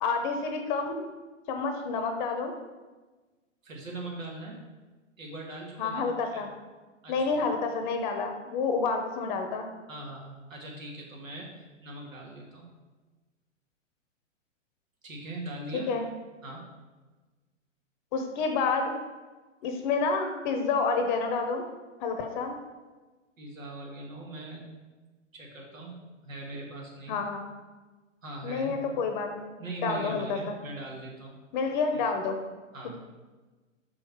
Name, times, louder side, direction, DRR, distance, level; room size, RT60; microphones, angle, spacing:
voice 1, 0.0-1.1 1.5-2.5 5.8-6.5 7.1-9.7 15.7-16.1 18.1-18.9 19.6-21.6 22.0-22.6 27.1-27.4 28.4-29.5 29.8-30.6 31.5-32.4, left 4 dB, 35° left, 5 dB, 0.8 m, -29 dB
voice 2, 3.6-4.6 5.2-6.4 7.0-7.4 9.9-12.7 15.0-15.9 16.4-16.6 23.4-24.7 25.3-27.2 28.2-29.0 29.6-31.3 32.7-33.0, right 2 dB, 85° right, -1 dB, 2.1 m, -41 dB
5.9 x 4.9 x 4.6 m, 1.3 s
hypercardioid pair, 120°, 39 cm